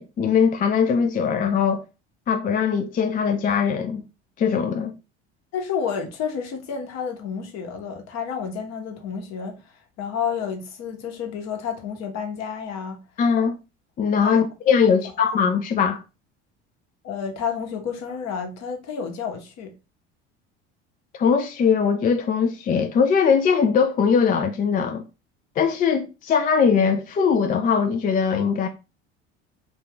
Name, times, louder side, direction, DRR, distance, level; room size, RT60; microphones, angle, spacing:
voice 1, 0.0-1.8 2.3-4.0 4.4-4.9 13.2-13.6 14.0-16.0 21.1-25.0 25.6-28.7, left 6 dB, 25° left, 0.4 m, -21 dB
voice 2, 5.5-9.6 10.0-13.0 14.2-14.4 17.0-19.7, left 7 dB, 50° left, 0.9 m, -30 dB
2.5 x 2.3 x 3.5 m
hypercardioid pair, 70°, 33 cm